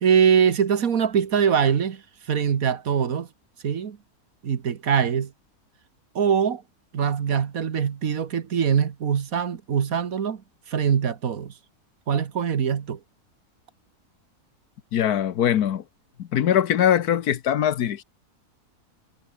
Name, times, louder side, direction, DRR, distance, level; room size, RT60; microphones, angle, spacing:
voice 1, 0.0-3.3 3.6-4.0 4.4-5.3 6.2-6.6 6.9-10.4 10.7-11.5 12.1-13.0, right 7 dB, 65° right, 1.7 m, -23 dB
voice 2, 14.9-15.8 16.2-18.0, left 10 dB, 75° left, 1.5 m, -22 dB
omnidirectional pair, 1.6 m